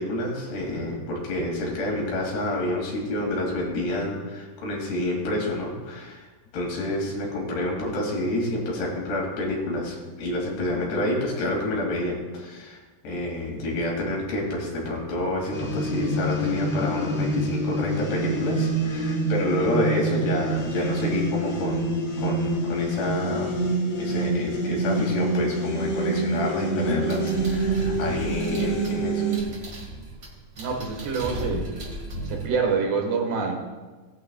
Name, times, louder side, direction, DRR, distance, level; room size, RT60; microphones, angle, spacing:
voice 1, 0.0-6.3 6.5-21.9 22.2-23.7 24.0-29.3, left 1 dB, 75° left, -2 dB, 4.4 m, -28 dB
sound 1, 15.5-29.4, right 2 dB, 45° left, 2.5 m, -26 dB
sound 2, 27.1-32.5, right 1 dB, 40° right, 1.8 m, -35 dB
voice 2, 30.6-31.7 32.2-33.5, right 5 dB, 80° right, 2 dB, 3.6 m, -26 dB
18.5 x 11.0 x 2.3 m, 1.3 s
omnidirectional pair, 4.7 m